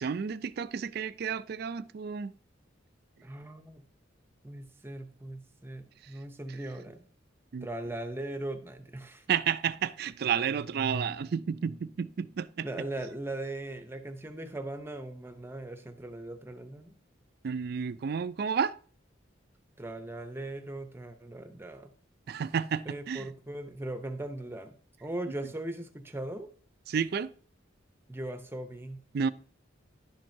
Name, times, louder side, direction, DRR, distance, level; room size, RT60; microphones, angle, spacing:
voice 1, 0.0-2.3 7.5-7.7 9.3-12.7 17.4-18.7 22.3-23.3 26.9-27.3 29.1-29.3, right 7 dB, 55° right, 0.3 m, -31 dB
voice 2, 3.2-3.8 4.4-7.0 7.6-9.3 12.6-16.9 19.8-21.9 22.9-26.5 28.1-29.0, right 1 dB, 10° right, 0.7 m, -39 dB
11.0 x 7.5 x 2.7 m
head